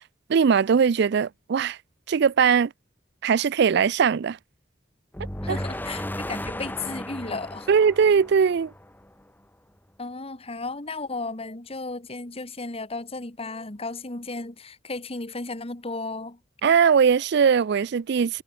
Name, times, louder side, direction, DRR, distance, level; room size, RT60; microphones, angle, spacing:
voice 1, 0.3-1.8 2.1-2.7 3.2-4.4 5.5-5.6 7.7-8.7 16.6-18.4, right 6 dB, 65° right, 0.4 m, -20 dB
sound 1, 5.1-9.2, left 1 dB, 10° left, 4.3 m, -35 dB
voice 2, 5.4-7.7 10.0-16.4, left 3 dB, 35° left, 1.8 m, -34 dB
head